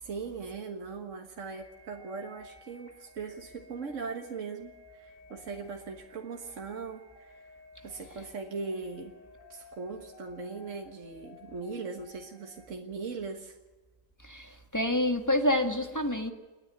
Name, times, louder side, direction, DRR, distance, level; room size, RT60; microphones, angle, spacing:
voice 1, 0.0-7.5 7.8-9.1 9.5-13.6, right 4 dB, 75° right, 3 dB, 1.8 m, -39 dB
sound 1, 1.5-12.7, left 3 dB, 85° left, 3.9 m, -55 dB
voice 2, 14.2-16.3, left 1 dB, 15° left, 5 dB, 1.6 m, -28 dB
29.0 x 10.0 x 9.6 m, 1.2 s
omnidirectional pair, 1.3 m